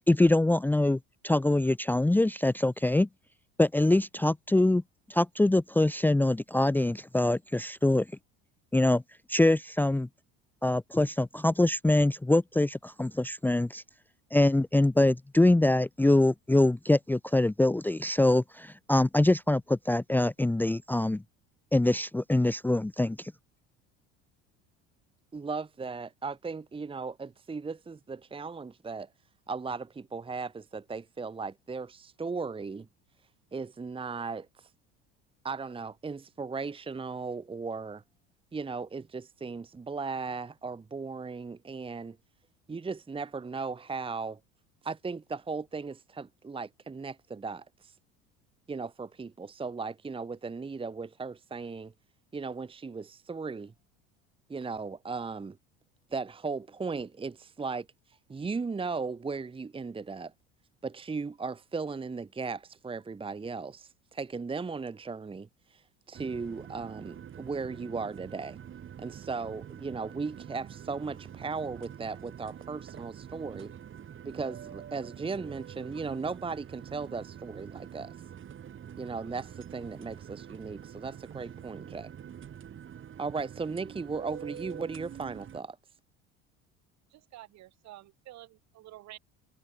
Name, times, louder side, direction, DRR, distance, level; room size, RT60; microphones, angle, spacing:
voice 1, 0.1-3.1 3.6-4.8 5.1-8.1 8.7-9.0 9.3-10.1 10.6-13.8 14.3-21.2 21.7-23.3, left 2 dB, 5° left, 0.7 m, -24 dB
voice 2, 25.3-29.1 29.5-32.9 33.5-34.7 35.4-38.0 38.5-42.2 42.7-44.4 44.8-48.0 48.7-51.9 52.3-53.7 54.5-55.6 56.1-60.3 60.8-68.6 69.0-73.7 74.2-78.1 79.0-82.1 83.2-85.8, right 4 dB, 15° right, 1.1 m, -37 dB
sound 1, 66.1-85.6, right 9 dB, 40° right, 2.9 m, -46 dB
voice 3, 87.1-89.2, right 15 dB, 60° right, 4.7 m, -50 dB
hypercardioid pair, 80°, 31 cm